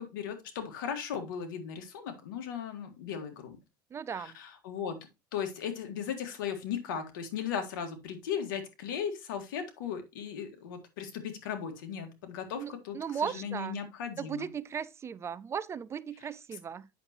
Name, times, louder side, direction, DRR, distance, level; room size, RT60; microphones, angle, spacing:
voice 1, 0.0-3.6 4.1-5.0 5.3-14.5, left 7 dB, 85° left, 1.7 m, -37 dB
voice 2, 3.9-4.4 12.5-13.8 14.2-16.9, right 7 dB, 25° right, 0.4 m, -37 dB
8.1 x 6.3 x 2.9 m
supercardioid pair, 120°, 11 cm